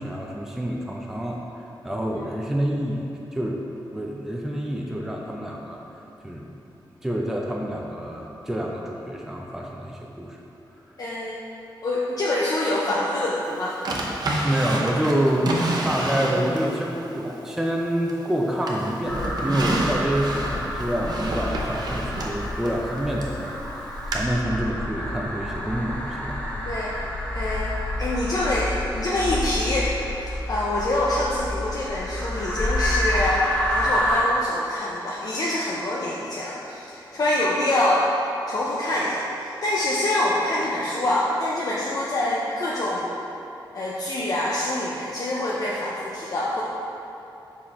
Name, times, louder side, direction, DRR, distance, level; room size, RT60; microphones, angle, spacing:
voice 1, 0.0-1.4 1.8-5.8 6.2-6.5 7.0-10.4 14.4-15.5 15.8-26.4, right 1 dB, 5° right, -2 dB, 0.5 m, -27 dB
voice 2, 11.0-11.4 11.8-13.8 26.6-26.9 27.3-29.9 30.5-38.1 38.5-43.1 43.7-46.6, left 1 dB, 45° left, -5 dB, 0.6 m, -25 dB
Drawer open or close, 13.8-16.8 17.2-18.3 18.7-23.4 24.1-24.2, right 2 dB, 55° right, 0.8 m, -29 dB
sound 1, 19.1-34.2, left 1 dB, 15° left, 0.9 m, -28 dB
5.6 x 4.8 x 4.2 m, 3.0 s
wide cardioid pair, 150°, 8 cm